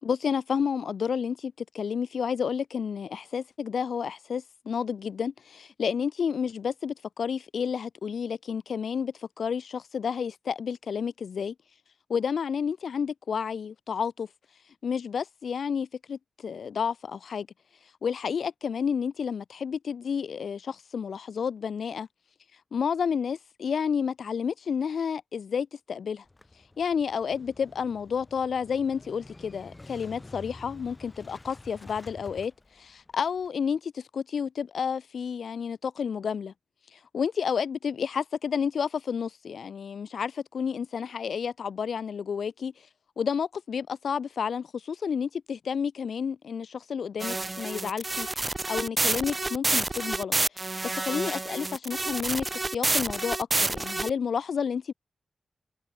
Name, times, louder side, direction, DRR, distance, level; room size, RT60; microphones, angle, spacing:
voice 1, 0.0-11.5 12.1-14.3 14.8-17.5 18.0-22.1 22.7-26.2 26.8-32.5 32.8-36.5 36.9-42.7 43.2-50.7 50.9-54.9, left 6 dB, 80° left, 5.8 m, -30 dB
Motorcycle / Engine starting, 26.3-33.5, left 2 dB, 25° left, 6.5 m, -49 dB
sound 1, 47.2-54.1, right 2 dB, 30° right, 4.9 m, -29 dB
wide cardioid pair, 80°, 0 cm